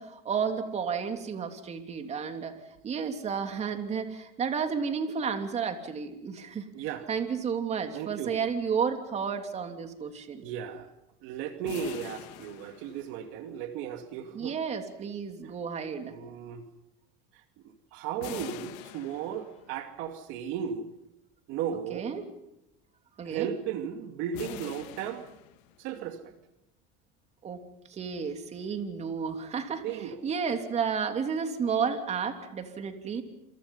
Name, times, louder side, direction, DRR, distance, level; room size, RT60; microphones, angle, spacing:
voice 1, 0.0-2.5 2.8-6.7 7.1-10.4 14.3-16.1 21.9-22.3 23.2-23.5 27.4-27.6 27.9-29.8 30.2-33.2, right 6 dB, 30° right, 6 dB, 3.2 m, -32 dB
voice 2, 6.7-7.1 7.9-8.4 10.4-10.9 11.2-14.5 15.4-15.5 16.0-16.6 17.3-17.4 17.9-20.9 21.5-22.1 23.2-25.2 25.8-26.3 29.8-30.2, right 8 dB, 70° right, 7 dB, 2.4 m, -35 dB
sound 1, 11.6-13.5 18.2-19.8 24.3-26.0, left 14 dB, 80° left, 2.0 m, -44 dB
28.5 x 27.5 x 5.6 m, 0.88 s
cardioid pair, 135°, 21 cm